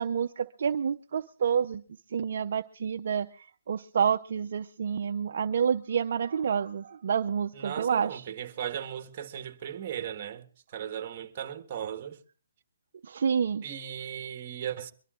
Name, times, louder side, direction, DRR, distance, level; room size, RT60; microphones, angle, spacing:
voice 1, 0.0-1.8 2.1-3.3 3.7-8.2 13.1-13.6, right 7 dB, 60° right, 0.6 m, -28 dB
voice 2, 7.5-10.5 10.7-12.2 13.6-14.9, right 9 dB, 35° right, 1.6 m, -37 dB
23.5 x 12.5 x 3.8 m
hypercardioid pair, 155°, 0 cm